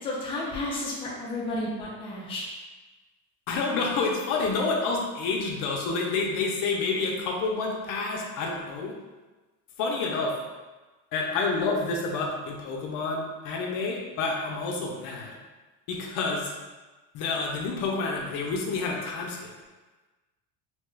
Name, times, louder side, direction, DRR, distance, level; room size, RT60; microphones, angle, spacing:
voice 1, 0.0-2.5 11.3-11.4, left 2 dB, 15° left, -5 dB, 0.5 m, -32 dB
voice 2, 3.5-8.9 9.8-10.3 11.1-15.4 15.9-16.5 17.1-19.5, left 3 dB, 60° left, 0 dB, 0.6 m, -29 dB
2.9 x 2.2 x 3.2 m, 1.2 s
cardioid pair, 160°, 35 cm